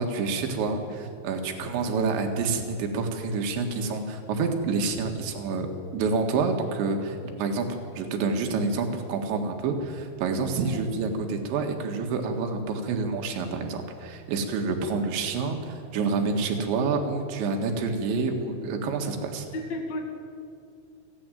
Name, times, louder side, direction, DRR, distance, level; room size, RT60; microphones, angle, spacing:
voice 1, 0.0-19.5, right 4 dB, 75° right, 4 dB, 4.0 m, -28 dB
voice 2, 19.5-20.0, left 2 dB, 50° left, 3 dB, 2.5 m, -33 dB
29.5 x 10.5 x 9.2 m, 2.4 s
omnidirectional pair, 5.4 m